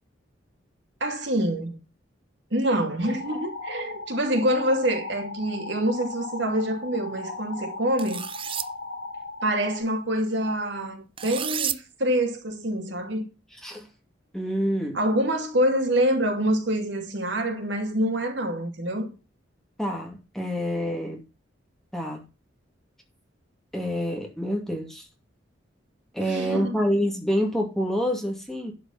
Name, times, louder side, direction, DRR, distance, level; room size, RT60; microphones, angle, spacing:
voice 1, 1.0-1.7 2.5-8.3 9.4-13.2 14.9-19.1 26.2-26.8, right 1 dB, 65° right, 2.6 m, -26 dB
sound 1, 3.0-9.8, left 3 dB, 80° left, 4.4 m, -37 dB
sound 2, 8.0-8.7 11.2-11.8, right 10 dB, 25° right, 0.5 m, -30 dB
voice 2, 14.3-15.0 19.8-21.2 21.9-22.2 23.7-25.1 26.1-28.7, equal, ahead, 2.3 m, -27 dB
11.5 x 5.1 x 5.7 m
head